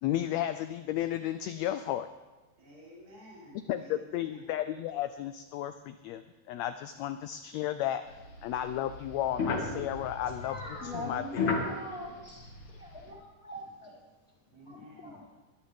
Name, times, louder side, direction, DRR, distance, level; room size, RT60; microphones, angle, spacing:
voice 1, 0.0-2.1 3.7-8.0 8.4-11.5, left 12 dB, 85° left, 10 dB, 1.5 m, -33 dB
voice 2, 2.6-4.5 14.5-15.2, equal, 65° right, -7 dB, 5.8 m, -52 dB
sound 1, 8.1-13.1, left 4 dB, 60° left, 3.1 m, -35 dB
voice 3, 10.4-14.0 14.6-15.2, left 1 dB, 10° left, -6 dB, 3.7 m, -42 dB
21.0 x 11.5 x 3.5 m, 1.2 s
omnidirectional pair, 3.6 m